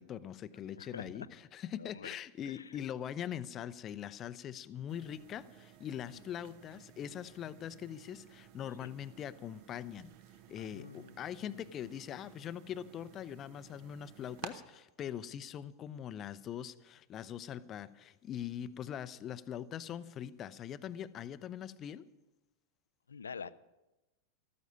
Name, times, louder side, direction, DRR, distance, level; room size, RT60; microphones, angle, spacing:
voice 1, 0.0-10.1 10.5-22.1, left 10 dB, 30° left, 16 dB, 0.6 m, -42 dB
voice 2, 0.7-1.3 1.8-2.1 2.5-2.8 6.1-6.2 8.8-8.9 10.6-11.2 23.1-23.5, left 6 dB, 70° left, 17 dB, 0.5 m, -46 dB
sound 1, 4.9-14.5, right 10 dB, 50° right, 0.9 m, -54 dB
14.0 x 13.5 x 5.5 m, 1.0 s
figure-of-eight pair, 90°, 0 cm